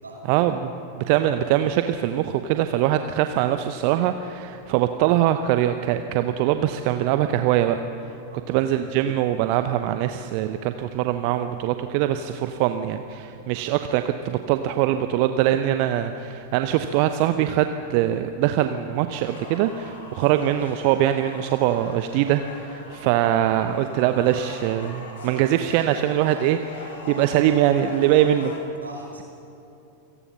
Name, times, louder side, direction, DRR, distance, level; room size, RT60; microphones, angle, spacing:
voice 1, 0.3-7.8 8.5-28.5, right 12 dB, 45° right, 9 dB, 0.9 m, -22 dB
voice 2, 8.3-8.7 28.8-29.2, right 1 dB, 75° right, 0 dB, 5.6 m, -41 dB
sound 1, 19.2-28.6, left 3 dB, 60° left, 3.6 m, -41 dB
28.0 x 18.5 x 5.8 m, 2.9 s
figure-of-eight pair, 90°, 0 cm